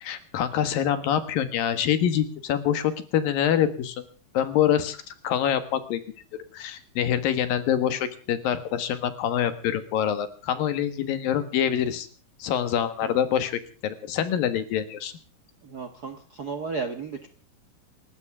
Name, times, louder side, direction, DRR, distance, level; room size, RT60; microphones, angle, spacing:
voice 1, 0.0-4.0 4.3-5.0 5.2-6.0 6.5-12.1 12.4-15.1, left 9 dB, 80° left, 11 dB, 3.3 m, -25 dB
voice 2, 15.6-17.3, right 4 dB, 85° right, 6 dB, 0.8 m, -34 dB
29.0 x 14.0 x 3.6 m, 0.37 s
omnidirectional pair, 4.1 m